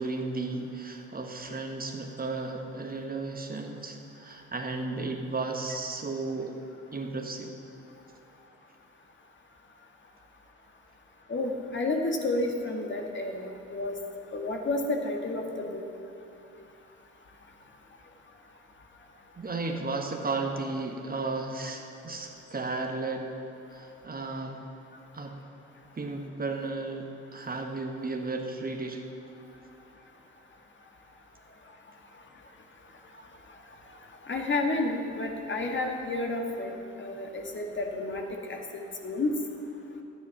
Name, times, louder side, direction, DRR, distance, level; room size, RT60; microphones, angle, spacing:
voice 1, 0.0-6.6 6.9-7.5 19.4-23.3 23.7-24.6 25.1-25.4 25.9-29.0, right 3 dB, 25° right, 3 dB, 1.4 m, -34 dB
voice 2, 11.3-14.0 14.3-15.8 34.2-39.3, left 2 dB, 35° left, 2 dB, 2.0 m, -31 dB
12.5 x 9.7 x 5.9 m, 2.7 s
hypercardioid pair, 55°, 32 cm